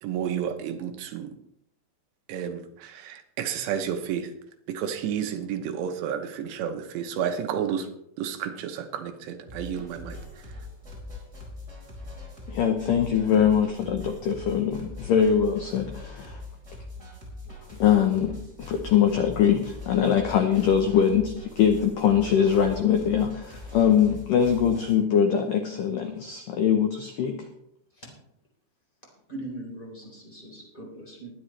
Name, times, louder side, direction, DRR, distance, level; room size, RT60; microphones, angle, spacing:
voice 1, 0.0-1.3 2.3-4.3 4.7-7.9 8.2-10.5, right 8 dB, 75° right, 6 dB, 3.0 m, -31 dB
sound 1, 9.5-24.9, left 2 dB, 15° right, 4.7 m, -42 dB
voice 2, 12.5-16.4 17.7-27.5, left 8 dB, 85° left, 5 dB, 1.9 m, -22 dB
voice 3, 29.3-31.3, right 1 dB, 10° left, -2 dB, 3.7 m, -40 dB
21.0 x 10.0 x 3.3 m, 0.77 s
omnidirectional pair, 5.3 m